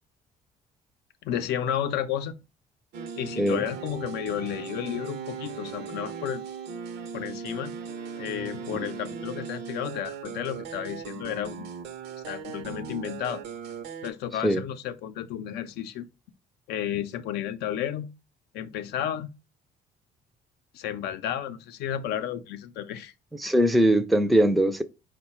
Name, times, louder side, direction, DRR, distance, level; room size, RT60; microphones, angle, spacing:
voice 1, 1.2-2.4 3.2-6.4 7.1-7.7 8.2-11.7 12.3-13.4 14.0-16.1 16.7-18.1 18.5-19.3 20.7-23.1 23.4-23.5, left 10 dB, 80° left, 0.5 m, -32 dB
sound 1, 2.9-14.1, right 6 dB, 80° right, 0.6 m, -38 dB
voice 2, 23.3-24.8, equal, ahead, 0.3 m, -21 dB
4.6 x 2.2 x 4.2 m
cardioid pair, 110°, 17 cm